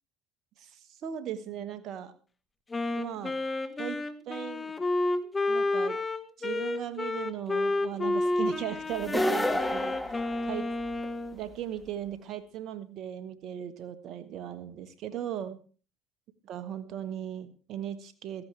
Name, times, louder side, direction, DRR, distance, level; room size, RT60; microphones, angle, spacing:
voice 1, 0.6-2.1 2.9-3.4 3.8-4.0 4.3-4.7 5.5-6.0 6.4-10.0 10.5-10.7 11.3-15.6 16.4-18.4, right 10 dB, 60° right, 12 dB, 1.5 m, -37 dB
Wind instrument woodwind instrument, 2.7-11.4, left 2 dB, 25° left, 1.5 m, -30 dB
sound 1, 9.0-11.0, left 1 dB, 5° left, 2.1 m, -30 dB
16.5 x 14.0 x 3.4 m, 0.37 s
hypercardioid pair, 70°, 0 cm